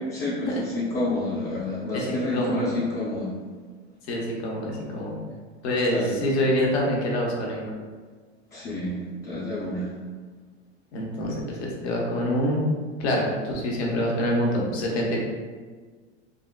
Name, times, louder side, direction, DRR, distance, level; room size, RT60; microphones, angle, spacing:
voice 1, 0.1-3.3 5.9-6.2 8.5-9.9, left 1 dB, 30° left, -8 dB, 0.6 m, -29 dB
voice 2, 2.1-2.7 4.1-5.2 5.6-7.6 10.9-12.6 13.0-15.2, equal, 65° left, -2 dB, 0.9 m, -26 dB
3.7 x 2.0 x 2.3 m, 1.5 s
hypercardioid pair, 100°, 34 cm